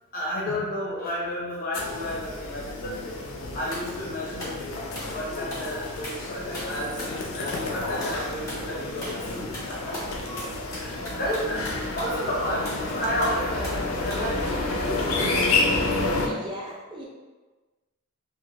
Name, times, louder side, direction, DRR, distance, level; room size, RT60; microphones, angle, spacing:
voice 1, 0.1-3.2 3.5-4.8 5.1-10.0 10.6-11.6 11.9-15.4, left 1 dB, 45° left, -4 dB, 0.8 m, -32 dB
sound 1, 1.7-16.3, left 2 dB, 75° left, 0.5 m, -30 dB
sound 2, 3.7-3.9 4.4-4.6 5.0-5.2 5.5-5.7 6.0-6.3 6.5-7.2 7.5-7.7 8.0-8.2 8.5-8.7 9.0-9.3 9.5-12.2 12.7-12.9 13.2-13.8 14.1-14.3, left 1 dB, 15° left, 1.1 m, -38 dB
voice 2, 10.9-11.4 16.2-17.1, right 1 dB, 20° right, -3 dB, 0.4 m, -38 dB
3.3 x 2.5 x 2.4 m, 1.3 s
head